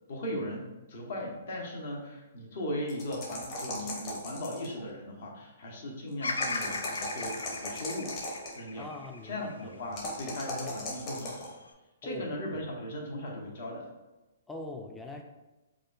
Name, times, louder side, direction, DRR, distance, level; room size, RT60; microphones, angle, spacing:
voice 1, 0.1-8.1 8.5-8.9 9.3-11.5 12.0-13.9, left 1 dB, 60° left, -1 dB, 0.9 m, -38 dB
sound 1, 2.9-4.8 6.2-8.6 9.9-11.5, left 2 dB, 40° left, 1.0 m, -38 dB
Bird vocalization bird call bird song, 6.2-10.4 11.0-11.7, left 3 dB, 90° left, 0.3 m, -37 dB
voice 2, 8.8-9.8 12.0-12.3 12.5-12.7 14.5-15.2, left 2 dB, 10° left, 2 dB, 0.3 m, -42 dB
4.8 x 2.2 x 2.4 m, 1.1 s
hypercardioid pair, 140°, 0 cm